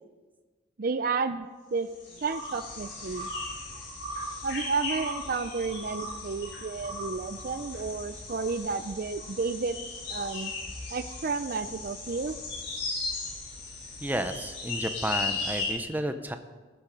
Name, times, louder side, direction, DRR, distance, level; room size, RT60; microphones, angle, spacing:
voice 1, 0.8-1.9 2.2-3.3 4.4-9.8 10.1-10.5 10.9-12.4, right 4 dB, 45° right, 11 dB, 0.4 m, -31 dB
sound 1, 1.9-15.7, left 3 dB, 70° left, 4.6 m, -37 dB
voice 2, 14.0-16.4, right 1 dB, 10° right, 8 dB, 0.7 m, -32 dB
19.5 x 8.7 x 5.3 m, 1.3 s
head